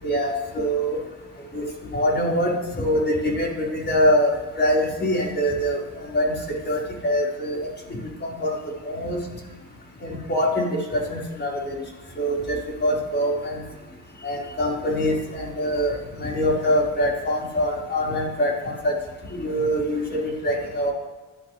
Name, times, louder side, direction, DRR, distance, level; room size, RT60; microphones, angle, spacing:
voice 1, 0.0-1.0 1.5-1.6 1.9-4.3 4.6-8.6 8.8-9.2 10.0-11.8 12.2-13.6 14.2-18.9 19.3-20.9, equal, 35° left, -3 dB, 5.0 m, -24 dB
24.5 x 12.5 x 3.4 m, 1.2 s
cardioid pair, 90°, 30 cm